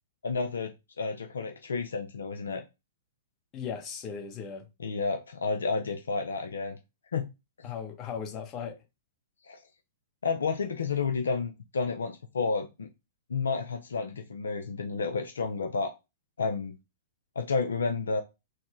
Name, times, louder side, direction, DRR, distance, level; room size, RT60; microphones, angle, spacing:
voice 1, 0.2-0.7 1.0-2.6 4.8-6.8 7.1-7.3 7.6-7.7 9.4-9.6 10.2-12.9 13.3-15.9 16.4-16.8 17.4-18.2, left 4 dB, 70° left, 0.4 m, -31 dB
voice 2, 3.5-4.7 7.6-8.8, left 7 dB, 30° left, 1.1 m, -37 dB
4.2 x 2.1 x 3.0 m
figure-of-eight pair, 105°, 0 cm